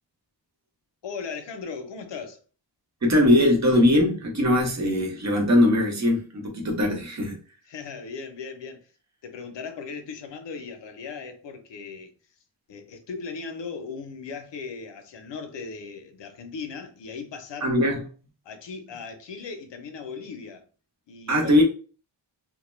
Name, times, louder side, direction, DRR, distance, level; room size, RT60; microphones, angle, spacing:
voice 1, 1.0-2.4 7.7-8.9 9.2-12.1 12.7-17.7 18.4-20.6 21.1-21.6, left 5 dB, 75° left, 0.6 m, -38 dB
voice 2, 3.0-7.4 17.6-18.0 21.3-21.6, left 1 dB, 40° right, 0.8 m, -20 dB
2.2 x 2.1 x 3.0 m
wide cardioid pair, 100°, 44 cm